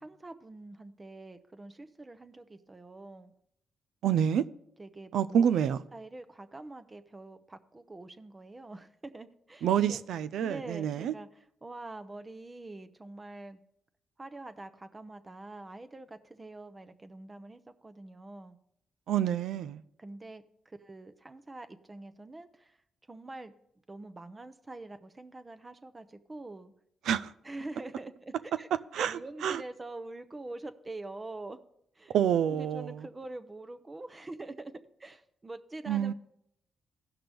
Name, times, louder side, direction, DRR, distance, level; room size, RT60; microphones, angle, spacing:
voice 1, 0.0-3.3 4.8-10.0 10.4-11.3 11.6-13.6 14.2-18.6 20.0-22.8 23.1-23.5 23.9-26.7 27.4-28.7 29.0-31.6 31.9-32.1 32.5-34.7 35.0-36.1, right 2 dB, 25° right, 0.7 m, -45 dB
voice 2, 4.0-4.4 5.1-5.8 9.6-11.1 19.1-19.8 27.1-27.3 28.9-29.6 32.1-32.9 35.9-36.1, right 9 dB, 80° right, 0.4 m, -27 dB
15.5 x 5.9 x 3.4 m
cardioid pair, 65°, 0 cm